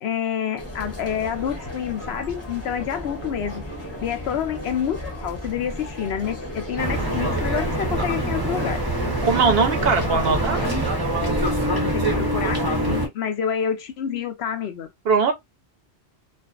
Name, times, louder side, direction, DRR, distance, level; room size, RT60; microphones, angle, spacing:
voice 1, 0.0-3.6 4.0-8.8 11.7-14.9, left 8 dB, 70° left, 0.8 m, -28 dB
sound 1, 0.6-11.7, equal, 15° left, 0.8 m, -34 dB
sound 2, 6.8-13.1, right 1 dB, 20° right, 0.7 m, -24 dB
voice 2, 9.2-10.6 15.0-15.3, right 5 dB, 65° right, 0.8 m, -20 dB
2.5 x 2.3 x 2.3 m
omnidirectional pair, 1.2 m